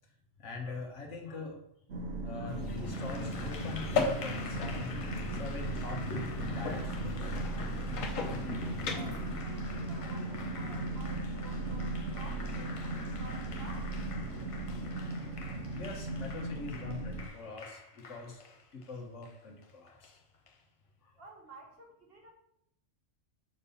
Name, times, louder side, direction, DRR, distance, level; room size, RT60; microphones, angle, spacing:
voice 1, 0.4-1.6 2.2-7.4 14.4-18.5 18.7-20.2 21.0-21.1, left 3 dB, 70° left, 2 dB, 1.4 m, -44 dB
sound 1, 1.9-17.3, right 2 dB, 75° right, 1.3 m, -37 dB
sound 2, 2.5-9.4, left 4 dB, 85° left, 1.3 m, -37 dB
Applause, 2.8-20.6, left 4 dB, 40° left, 0.5 m, -48 dB
voice 2, 8.9-13.9 21.2-22.3, right 2 dB, 50° right, 1 dB, 1.5 m, -52 dB
6.6 x 5.3 x 4.1 m, 0.76 s
omnidirectional pair, 1.3 m